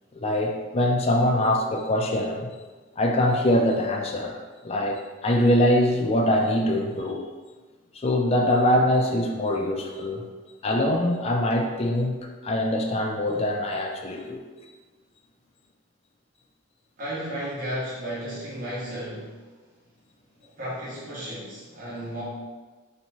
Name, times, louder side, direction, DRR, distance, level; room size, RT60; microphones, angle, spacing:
voice 1, 0.1-2.5 3.0-7.3 7.9-10.2 10.6-14.4, left 1 dB, 30° left, 2 dB, 0.4 m, -23 dB
voice 2, 17.0-19.5 20.4-22.2, equal, 45° right, -9 dB, 1.3 m, -34 dB
3.4 x 3.0 x 4.0 m, 1.3 s
head